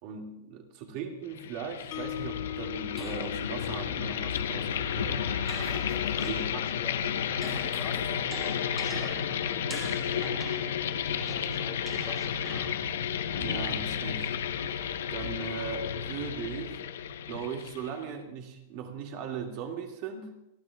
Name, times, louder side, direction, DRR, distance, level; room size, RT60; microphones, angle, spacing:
voice 1, 0.0-5.2 6.2-6.4 13.3-14.4 15.1-16.8 17.3-20.3, right 6 dB, 40° right, 2 dB, 2.2 m, -38 dB
sound 1, 1.3-18.0, left 8 dB, 85° left, 1.0 m, -32 dB
Mallet percussion, 1.9-8.1, left 12 dB, 40° left, 1.7 m, -43 dB
sound 2, 2.9-6.8 7.1-13.0, right 3 dB, 15° right, 2.2 m, -45 dB
voice 2, 5.8-10.4 11.1-12.7, left 5 dB, 15° left, -4 dB, 1.7 m, -46 dB
29.0 x 13.0 x 2.4 m, 0.85 s
supercardioid pair, 170°, 0 cm